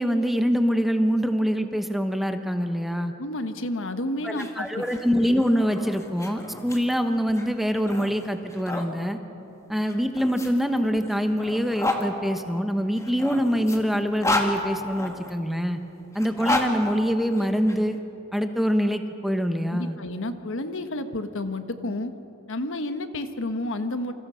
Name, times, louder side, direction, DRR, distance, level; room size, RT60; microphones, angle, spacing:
voice 1, 0.0-3.1 4.2-9.2 9.7-15.8 16.1-18.0 18.3-20.0, equal, ahead, 6 dB, 1.2 m, -24 dB
voice 2, 3.2-4.8 19.7-22.1 22.5-24.1, left 1 dB, 65° left, 9 dB, 1.3 m, -30 dB
sound 1, 4.2-8.9 9.8-12.0 13.0-15.3 16.1-17.8, left 2 dB, 15° left, 2.1 m, -31 dB
28.0 x 25.5 x 5.7 m, 2.9 s
head